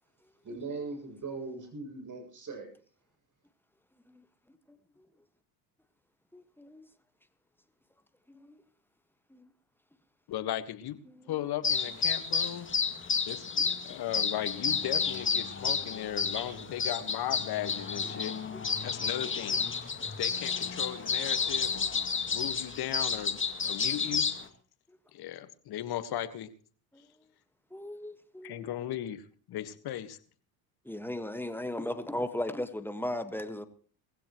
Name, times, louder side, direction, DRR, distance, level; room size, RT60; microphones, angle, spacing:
voice 1, 0.4-2.7, right 3 dB, 40° right, 7.3 m, -39 dB
voice 2, 6.3-6.8 8.3-8.5 9.3-9.5 11.2-11.3 27.7-28.7 30.9-33.7, left 1 dB, 5° left, 1.6 m, -36 dB
voice 3, 10.3-11.0 11.3-12.7 13.2-18.3 18.8-19.7 20.2-21.9 22.3-24.2 25.1-26.5 28.4-30.2, left 12 dB, 55° left, 1.6 m, -37 dB
sound 1, 11.6-24.4, left 5 dB, 25° left, 2.1 m, -31 dB
20.5 x 16.0 x 3.1 m
hypercardioid pair, 70°, 46 cm